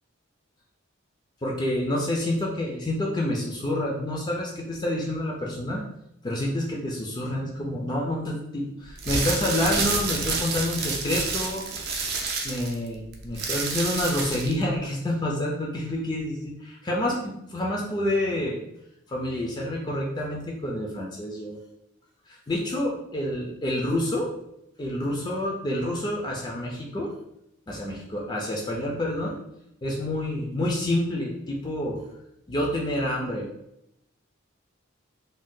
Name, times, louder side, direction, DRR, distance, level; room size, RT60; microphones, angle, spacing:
voice 1, 1.4-5.8 6.2-11.6 12.4-18.6 19.1-21.6 22.3-24.3 24.8-27.1 27.7-29.3 29.8-32.0 32.5-33.5, left 1 dB, 20° left, -2 dB, 0.3 m, -28 dB
sound 1, 8.9-14.6, right 4 dB, 50° right, 0.4 m, -29 dB
2.6 x 2.2 x 3.6 m, 0.81 s
head